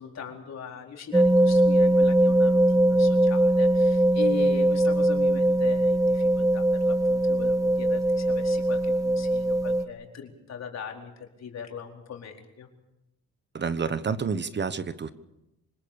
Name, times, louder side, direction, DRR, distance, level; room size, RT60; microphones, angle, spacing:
voice 1, 0.0-12.7, left 6 dB, 60° left, 2 dB, 4.5 m, -40 dB
sound 1, 1.1-9.8, right 1 dB, 10° right, 1.6 m, -21 dB
voice 2, 13.5-15.1, right 5 dB, 35° right, 13 dB, 1.1 m, -29 dB
26.0 x 19.0 x 7.0 m, 0.92 s
cardioid pair, 90°, 30 cm